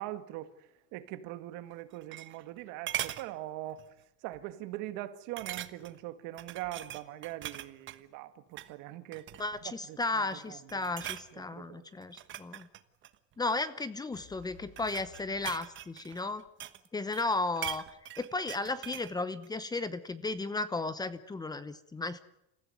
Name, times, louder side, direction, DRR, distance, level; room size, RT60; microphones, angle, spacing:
voice 1, 0.0-3.8 4.2-9.3 9.6-10.9 11.3-11.9, right 14 dB, 70° right, 2.0 m, -42 dB
sound 1, 1.7-2.6 2.9-3.3 3.8-4.0 4.3-4.4 5.4-6.0 6.4-8.0 8.5-8.7 9.1-9.6 10.2-10.4 10.7-11.3 12.0-13.6 14.4-16.9 17.1-19.1 19.4-19.5, right 12 dB, 40° right, 1.3 m, -41 dB
voice 2, 9.4-12.7 13.4-16.4 16.9-17.8 18.2-22.2, left 3 dB, 10° left, 0.9 m, -34 dB
sound 2, 14.1-16.5, left 7 dB, 80° left, 4.5 m, -57 dB
28.5 x 15.5 x 9.4 m
cardioid pair, 155°, 31 cm